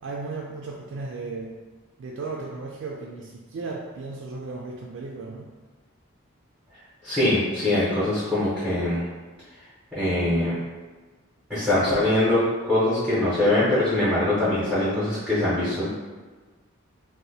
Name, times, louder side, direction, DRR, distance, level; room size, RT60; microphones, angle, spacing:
voice 1, 0.0-1.6 2.0-5.5, right 3 dB, 65° right, -1 dB, 0.3 m, -35 dB
voice 2, 7.0-9.0 9.9-10.6 11.5-15.9, left 1 dB, 5° right, -11 dB, 0.8 m, -23 dB
2.7 x 2.1 x 4.0 m, 1.3 s
head